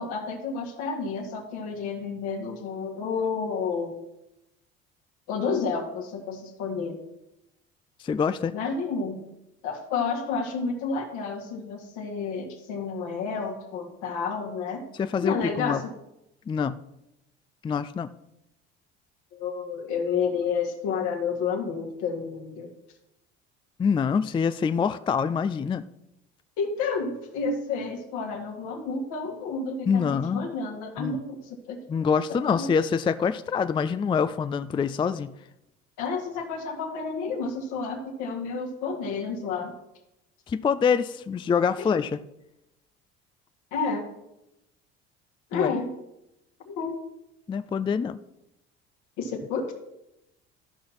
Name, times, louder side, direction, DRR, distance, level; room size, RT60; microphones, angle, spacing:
voice 1, 0.0-3.9 5.3-7.0 8.5-9.3 9.6-14.8 15.2-15.8 19.3-22.7 26.6-31.8 32.5-32.8 36.0-39.7 41.8-41.9 43.7-44.1 45.5-45.9 46.7-47.0 49.2-49.7, left 5 dB, 70° left, 2 dB, 2.2 m, -30 dB
voice 2, 8.0-8.5 15.0-15.8 16.5-16.8 17.6-18.1 23.8-25.8 29.9-30.5 31.0-31.2 31.9-35.3 40.5-42.2 45.5-45.8 47.5-48.2, left 6 dB, 15° left, 12 dB, 0.3 m, -25 dB
13.5 x 5.7 x 4.3 m, 0.87 s
hypercardioid pair, 65°, 31 cm